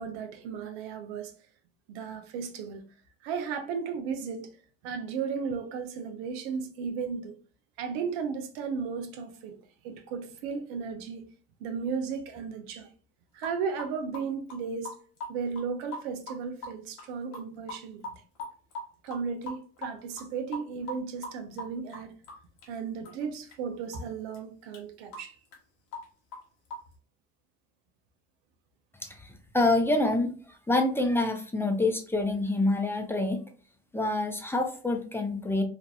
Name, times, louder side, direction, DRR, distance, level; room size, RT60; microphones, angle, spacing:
voice 1, 0.0-1.3 1.9-2.9 3.2-4.5 4.8-7.4 7.8-9.6 9.8-11.2 11.6-12.9 13.3-15.0 15.3-18.2 19.0-22.1 22.7-25.4, right 6 dB, 90° right, 0.5 m, -35 dB
sound 1, 13.4-13.5 13.8-15.7 15.9-16.7 17.0-17.1 17.3-17.4 17.7-22.8 23.0-23.2 23.5-23.6 23.9-24.0 24.3-24.4 24.7-24.8 25.1-25.6 25.9-26.0 26.3-27.0, left 1 dB, 75° left, 1.0 m, -40 dB
voice 2, 29.0-33.4 33.9-35.6, left 2 dB, 10° left, 0.6 m, -27 dB
2.9 x 2.5 x 2.2 m
supercardioid pair, 65°, 31 cm